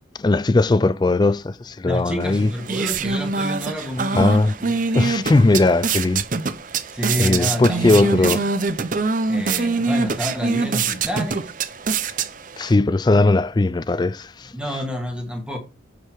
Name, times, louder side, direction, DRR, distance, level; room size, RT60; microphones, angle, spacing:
voice 1, 0.2-2.5 4.2-4.5 4.9-6.3 7.2-8.4 12.6-14.5, left 2 dB, 20° left, 0.3 m, -18 dB
voice 2, 1.9-4.7 6.4-6.6 6.9-8.4 9.3-11.5 13.2-13.3 14.5-15.6, equal, 5° right, 1.8 m, -29 dB
sound 1, 2.2-12.7, right 4 dB, 45° right, 0.6 m, -24 dB
10.0 x 4.8 x 4.7 m
head